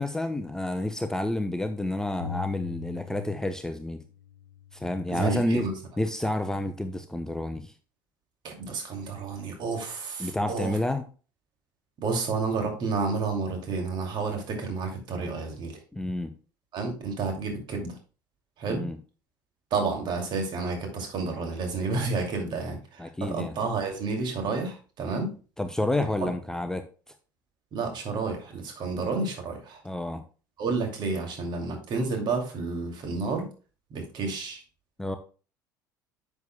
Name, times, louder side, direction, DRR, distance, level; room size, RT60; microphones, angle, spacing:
voice 1, 0.0-4.0 4.7-5.7 6.0-7.7 10.2-11.0 15.9-16.3 18.7-19.0 22.5-22.6 23.0-23.6 25.6-26.8 29.8-30.2 35.0-35.2, left 1 dB, 5° left, 8 dB, 0.7 m, -29 dB
sound 1, 2.2-3.7 4.0-5.7, left 9 dB, 65° left, 1.1 m, -42 dB
voice 2, 5.1-5.7 8.4-10.8 12.0-15.8 16.7-18.0 18.6-18.9 19.7-25.3 27.7-29.8 30.6-33.5 33.9-34.6, right 4 dB, 45° right, 3 dB, 2.6 m, -30 dB
10.5 x 7.1 x 2.3 m, 0.36 s
figure-of-eight pair, 65°, 11 cm